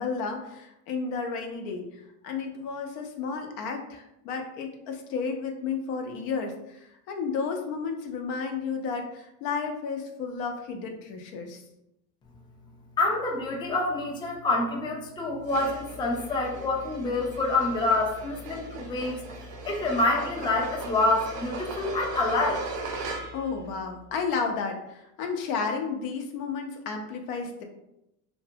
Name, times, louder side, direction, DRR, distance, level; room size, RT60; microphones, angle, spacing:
voice 1, 0.0-1.9 2.2-11.6 23.3-27.6, left 5 dB, 80° left, 4 dB, 0.6 m, -32 dB
voice 2, 13.0-19.2 19.6-22.6, left 2 dB, 10° left, 0 dB, 0.4 m, -27 dB
sound 1, 15.4-23.5, right 2 dB, 70° right, 0.7 m, -38 dB
2.6 x 2.1 x 2.6 m, 0.85 s
supercardioid pair, 100°, 40 cm